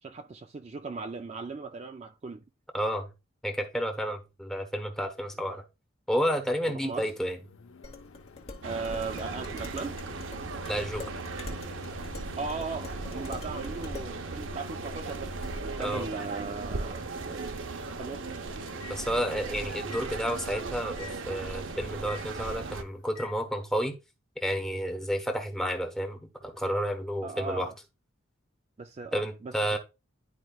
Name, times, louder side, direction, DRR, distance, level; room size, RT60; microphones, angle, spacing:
voice 1, 0.0-2.4 6.6-7.1 8.6-10.0 12.4-15.3 15.6-17.5 18.0-18.2 27.2-27.7 28.8-29.8, right 4 dB, 30° right, 0.3 m, -38 dB
voice 2, 2.7-3.1 3.4-5.6 6.1-7.4 10.7-11.0 15.8-16.1 18.9-23.9 24.4-27.7 29.1-29.8, equal, 5° left, 1.0 m, -31 dB
Microwave oven, 6.8-23.3, left 4 dB, 80° left, 0.6 m, -48 dB
Dishes pots and pans, 7.8-14.2, left 3 dB, 30° left, 1.2 m, -45 dB
sound 1, 8.6-22.8, right 3 dB, 70° right, 0.7 m, -37 dB
11.0 x 4.6 x 2.3 m
head